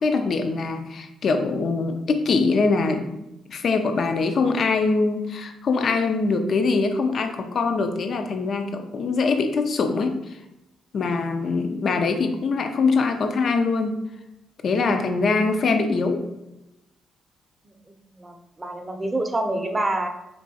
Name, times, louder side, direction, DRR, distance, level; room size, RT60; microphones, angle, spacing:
voice 1, 0.0-3.1 3.5-10.4 10.9-13.9 14.6-16.2, left 4 dB, 55° left, 6 dB, 0.4 m, -23 dB
voice 2, 17.6-20.1, right 1 dB, 20° right, 5 dB, 0.6 m, -27 dB
4.5 x 3.0 x 2.7 m, 0.92 s
cardioid pair, 90°, 0 cm